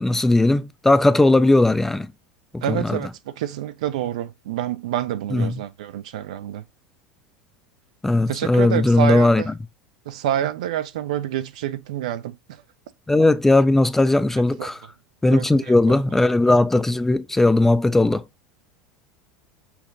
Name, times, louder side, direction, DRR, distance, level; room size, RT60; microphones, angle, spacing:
voice 1, 0.0-2.1 2.5-3.0 5.3-5.6 8.0-9.4 13.1-14.8 15.2-18.2, left 2 dB, 10° left, 0.3 m, -18 dB
voice 2, 2.6-6.6 8.3-9.5 10.1-12.3 14.6-14.7 15.3-15.5 15.9-16.0, right 11 dB, 60° right, 0.5 m, -27 dB
5.8 x 2.2 x 3.7 m
figure-of-eight pair, 75°, 4 cm